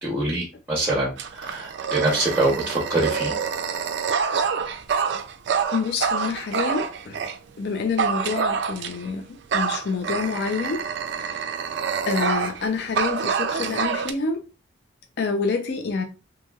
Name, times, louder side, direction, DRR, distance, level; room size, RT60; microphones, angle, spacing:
voice 1, 0.0-3.3, right 2 dB, 10° right, 0.7 m, -24 dB
Dog, 1.2-7.4 8.0-9.1 9.5-12.6 12.9-14.1, right 6 dB, 60° right, 0.3 m, -26 dB
voice 2, 5.7-7.2 7.6-10.8 11.2-11.7 12.1-14.4 15.2-16.0, left 4 dB, 55° left, 0.4 m, -27 dB
2.8 x 2.8 x 2.3 m
head